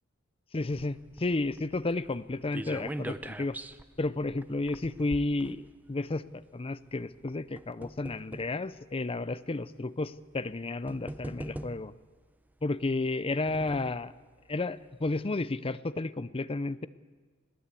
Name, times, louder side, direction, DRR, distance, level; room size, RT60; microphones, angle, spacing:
voice 1, 0.5-3.6 4.0-11.9 12.6-14.1 14.5-16.9, left 2 dB, 25° left, 15 dB, 0.6 m, -32 dB
sound 1, 0.7-6.1 7.0-8.6 9.4-9.5 10.5-10.6 10.9-12.1 13.0-14.1 14.5-14.6 14.9-15.0, right 1 dB, 10° right, 0.6 m, -43 dB
20.5 x 19.0 x 8.3 m, 1.5 s
head